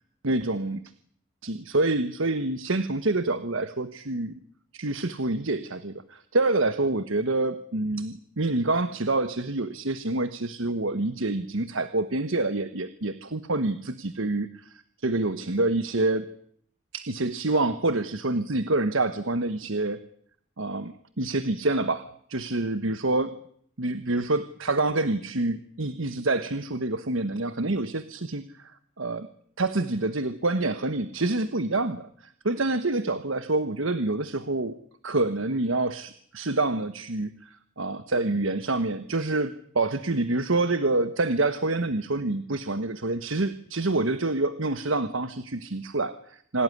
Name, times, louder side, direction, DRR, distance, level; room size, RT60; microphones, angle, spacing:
voice 1, 0.2-0.8 1.4-4.4 4.7-16.3 16.9-20.0 20.6-23.4 23.8-29.3 29.6-34.8 35.0-46.6, right 2 dB, 75° right, 12 dB, 1.3 m, -27 dB
27.0 x 17.5 x 9.9 m, 0.64 s
head